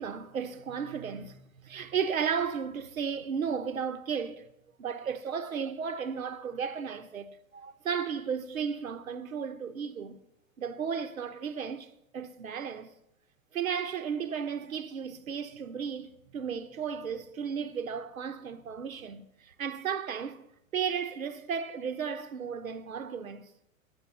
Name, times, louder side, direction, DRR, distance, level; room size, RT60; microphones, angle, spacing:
voice 1, 0.0-4.5 4.8-10.2 10.6-12.9 13.5-20.4 20.7-23.5, right 7 dB, 75° right, 1.0 m, -34 dB
10.5 x 8.9 x 6.1 m
figure-of-eight pair, 100°, 41 cm